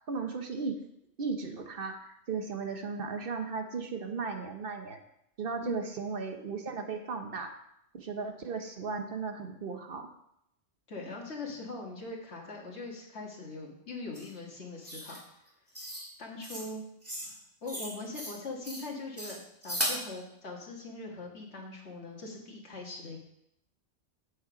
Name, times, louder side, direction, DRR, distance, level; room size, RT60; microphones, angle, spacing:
voice 1, 0.1-0.8 1.2-5.0 5.4-7.5 7.9-10.1, right 4 dB, 55° right, 6 dB, 1.1 m, -36 dB
voice 2, 10.9-15.2 16.2-16.8 17.6-23.2, left 3 dB, 85° left, -1 dB, 2.0 m, -41 dB
sound 1, 14.1-14.3 14.8-15.2 15.8-16.1 16.4-16.7 17.0-17.3 17.7-18.4 18.6-18.9 19.2-20.0, equal, 15° right, 1.8 m, -36 dB
7.8 x 6.5 x 5.0 m, 0.79 s
omnidirectional pair, 1.1 m